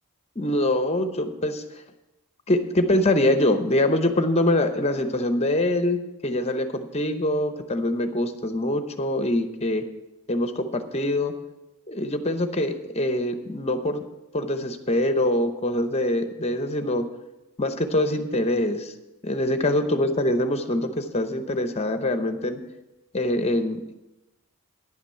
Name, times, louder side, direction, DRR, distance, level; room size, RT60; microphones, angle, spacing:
voice 1, 0.4-1.6 2.5-9.8 10.3-11.4 11.9-14.0 14.3-17.0 17.6-18.9 19.2-22.6 23.1-23.9, left 1 dB, 30° left, 8 dB, 0.8 m, -24 dB
10.5 x 5.9 x 7.7 m, 0.99 s
head